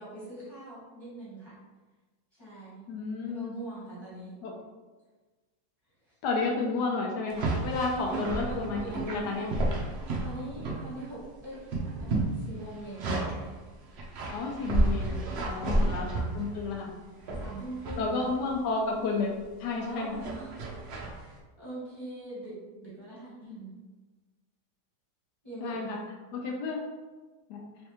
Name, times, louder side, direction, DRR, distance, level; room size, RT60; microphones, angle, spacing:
voice 1, 0.0-1.5 2.3-2.9 3.2-4.3 7.8-9.7 10.2-11.6 12.0-13.2 15.5-16.1 17.4-18.3 19.8-20.7 21.6-22.5 22.8-23.7 25.4-26.1, right 2 dB, 15° right, -10 dB, 1.3 m, -42 dB
voice 2, 2.9-3.5 4.4-4.5 6.2-9.5 14.3-15.2 15.5-16.9 18.0-19.3 19.6-20.1 25.6-26.0 26.3-26.8 27.5-27.6, left 3 dB, 80° left, 0 dB, 1.2 m, -31 dB
sound 1, 7.3-11.2 11.4-13.5 14.0-16.8 17.3-18.0 18.5-18.8 20.2-21.2, right 2 dB, 80° right, 0.5 m, -31 dB
3.3 x 3.2 x 2.9 m, 1.3 s
omnidirectional pair, 1.8 m